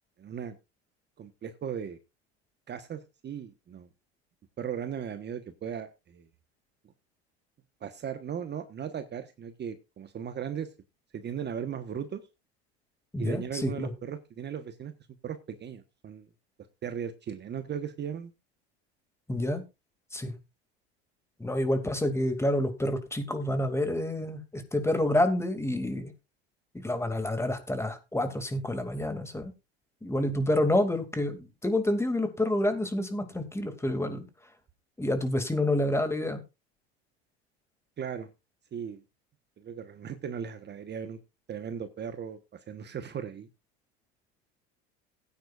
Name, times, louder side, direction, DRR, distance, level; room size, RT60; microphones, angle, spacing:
voice 1, 0.2-0.6 1.2-2.0 2.7-3.9 4.6-6.3 7.8-10.7 11.1-12.2 13.2-14.9 15.2-16.3 16.8-18.3 38.0-38.3 38.7-39.0 39.6-41.2 41.5-42.4 42.7-43.5, right 8 dB, 30° right, 9 dB, 1.3 m, -37 dB
voice 2, 13.1-13.9 19.3-19.6 20.1-20.3 21.4-26.1 26.8-29.5 30.0-34.2 35.0-36.4, left 1 dB, 10° left, 7 dB, 2.6 m, -28 dB
17.5 x 9.6 x 2.5 m, 0.25 s
hypercardioid pair, 95°, 33 cm